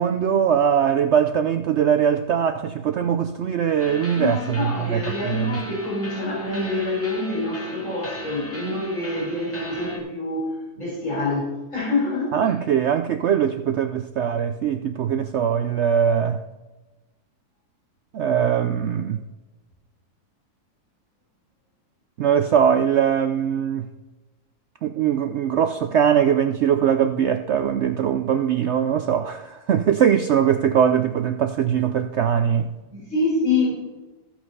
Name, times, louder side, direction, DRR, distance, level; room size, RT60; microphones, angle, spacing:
voice 1, 0.0-5.6 12.3-16.4 18.1-19.2 22.2-23.9 24.8-32.7, right 8 dB, 75° right, 0.6 m, -21 dB
sound 1, 3.8-10.0, left 1 dB, 10° left, 2.4 m, -38 dB
voice 2, 4.2-12.5 32.9-33.7, left 2 dB, 50° left, 4.3 m, -26 dB
14.5 x 5.8 x 5.5 m
omnidirectional pair, 1.7 m